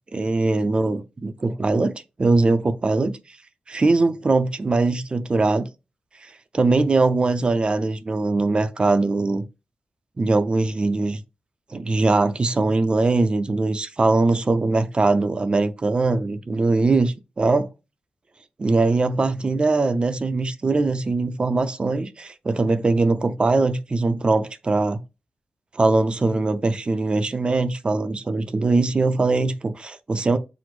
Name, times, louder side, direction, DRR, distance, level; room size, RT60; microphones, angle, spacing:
voice 1, 0.1-3.1 3.7-5.7 6.2-9.4 10.2-11.2 11.7-17.7 18.6-25.0 25.7-30.4, right 3 dB, 35° right, 0.5 m, -21 dB
5.9 x 2.0 x 3.1 m
wide cardioid pair, 110°, 3 cm